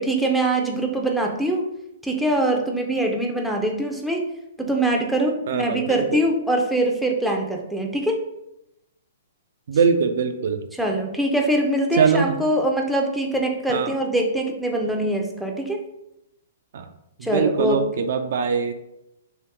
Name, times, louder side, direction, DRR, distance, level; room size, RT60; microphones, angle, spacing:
voice 1, 0.0-1.7 2.0-4.2 4.6-8.2 10.8-15.8 17.2-17.8, right 1 dB, ahead, 0 dB, 0.5 m, -23 dB
voice 2, 5.5-6.2 9.7-10.6 11.9-12.4 13.7-14.0 16.7-16.9 17.2-18.7, right 6 dB, 65° right, 7 dB, 0.3 m, -22 dB
3.0 x 2.9 x 3.4 m, 0.85 s
hypercardioid pair, 130°, 0 cm